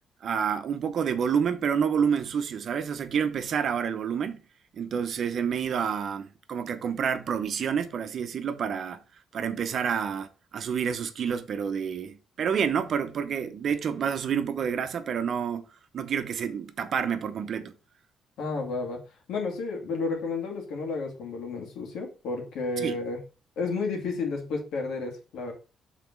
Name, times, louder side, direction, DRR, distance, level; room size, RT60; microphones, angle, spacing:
voice 1, 0.2-4.4 4.7-9.0 9.3-15.6 15.9-17.7 22.8-23.0, right 7 dB, 60° right, 0.8 m, -28 dB
voice 2, 18.4-19.0 19.3-23.2 23.6-25.5, left 3 dB, 80° left, 2.3 m, -31 dB
5.9 x 4.1 x 5.9 m
cardioid pair, 90°, 0 cm